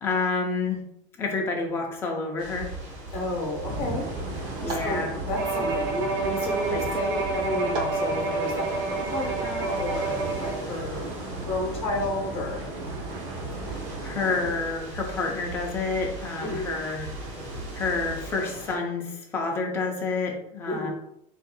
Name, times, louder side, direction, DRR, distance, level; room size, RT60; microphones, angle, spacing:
voice 1, 0.0-0.8 1.2-2.7 4.6-5.1 6.7-6.8 14.0-17.1 17.7-20.9, left 4 dB, 15° left, 0 dB, 0.5 m, -29 dB
sound 1, 2.4-18.8, right 1 dB, 45° right, 1.3 m, -38 dB
voice 2, 3.1-4.1 4.3-11.1 11.5-12.6 16.4-16.7 20.7-20.9, left 1 dB, 35° left, 0 dB, 1.1 m, -32 dB
sound 2, 3.6-14.5, right 3 dB, 30° right, 0.7 m, -36 dB
Bowed string instrument, 5.3-10.7, right 3 dB, 65° right, 0.7 m, -29 dB
4.1 x 2.6 x 2.2 m, 0.75 s
cardioid pair, 175°, 16 cm